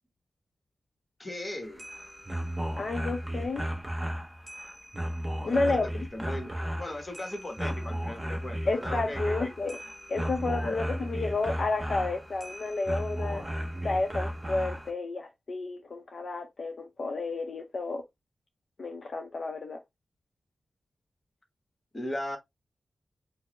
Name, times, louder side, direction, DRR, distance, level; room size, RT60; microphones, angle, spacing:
voice 1, 1.2-1.9 5.4-9.5 10.2-10.8 21.9-22.4, left 1 dB, 20° left, 1.0 m, -38 dB
sound 1, 1.6-14.9, equal, 10° right, 0.7 m, -35 dB
voice 2, 2.8-3.6 5.4-5.9 8.7-9.8 10.1-13.4 13.8-18.0 18.8-19.8, left 3 dB, 50° left, 0.6 m, -31 dB
4.5 x 2.0 x 3.0 m
wide cardioid pair, 175°, 0 cm